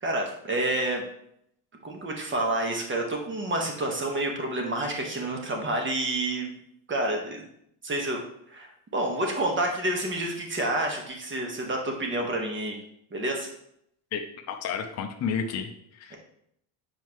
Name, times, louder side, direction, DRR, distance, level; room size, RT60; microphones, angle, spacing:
voice 1, 0.0-1.0 1.8-6.5 6.9-7.4 7.8-8.2 8.5-12.8 13.1-13.5 16.1-16.2, right 1 dB, 25° right, 1 dB, 1.4 m, -29 dB
voice 2, 14.1-16.2, left 6 dB, 35° left, 3 dB, 0.7 m, -32 dB
7.7 x 4.6 x 3.1 m, 0.72 s
cardioid pair, 130°, 48 cm